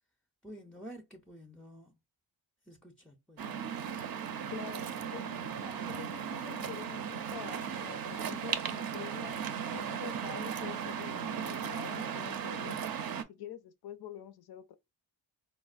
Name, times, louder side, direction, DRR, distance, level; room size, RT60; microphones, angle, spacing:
voice 1, 0.4-2.0 2.6-3.5, equal, ahead, 0.3 m, -50 dB
Waves surf, 3.4-13.2, right 8 dB, 50° right, 0.5 m, -37 dB
voice 2, 4.5-4.8 5.1-9.4 9.7-12.8 13.3-14.7, left 10 dB, 60° left, 0.5 m, -46 dB
4.0 x 2.1 x 2.4 m
wide cardioid pair, 90°, 45 cm